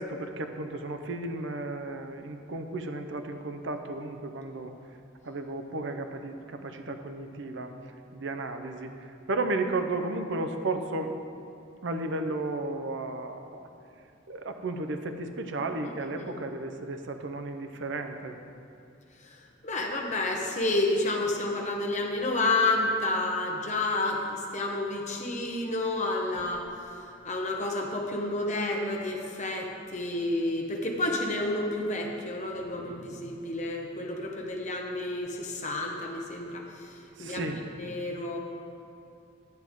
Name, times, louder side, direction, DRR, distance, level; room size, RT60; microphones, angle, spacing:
voice 1, 0.0-4.7 5.2-7.7 8.1-11.1 11.8-13.7 14.3-18.4 32.6-33.0 37.2-37.7, right 2 dB, 70° right, 6 dB, 0.7 m, -34 dB
voice 2, 19.6-26.7 27.2-36.6 37.2-37.5 37.8-38.4, left 2 dB, 40° left, 1 dB, 1.0 m, -30 dB
10.5 x 7.6 x 3.7 m, 2.6 s
head